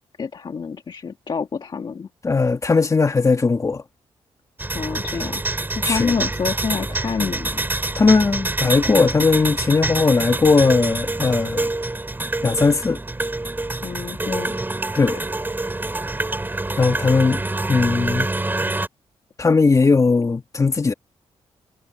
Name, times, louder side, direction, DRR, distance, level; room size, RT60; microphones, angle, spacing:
voice 1, 0.2-2.1 4.7-5.4 5.8-7.7 13.8-14.6, left 6 dB, 45° left, 1.7 m, -27 dB
voice 2, 2.2-3.8 5.8-6.2 8.0-11.7 12.4-13.0 15.0-15.2 16.8-17.4 17.7-18.3 19.4-20.9, left 4 dB, 30° left, 1.9 m, -18 dB
sound 1, 4.6-18.9, right 2 dB, 20° right, 6.6 m, -26 dB
cardioid pair, 90°, 11 cm